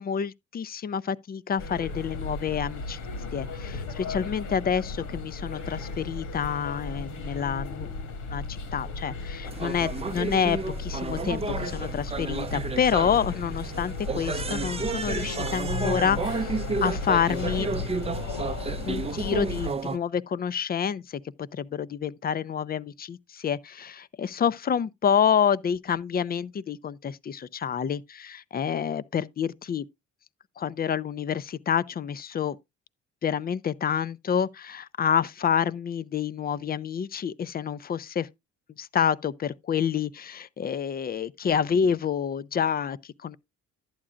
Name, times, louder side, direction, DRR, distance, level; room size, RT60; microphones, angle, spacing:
voice 1, 0.0-3.0 3.3-7.9 8.3-17.7 18.9-29.9 30.6-32.6 33.2-38.3 38.8-43.4, left 7 dB, 30° left, 0.4 m, -28 dB
sound 1, 1.6-19.7, left 3 dB, 85° left, 1.8 m, -35 dB
sound 2, 9.4-20.0, right 4 dB, 20° right, 0.5 m, -32 dB
11.5 x 8.6 x 2.5 m
cardioid pair, 90°, 30 cm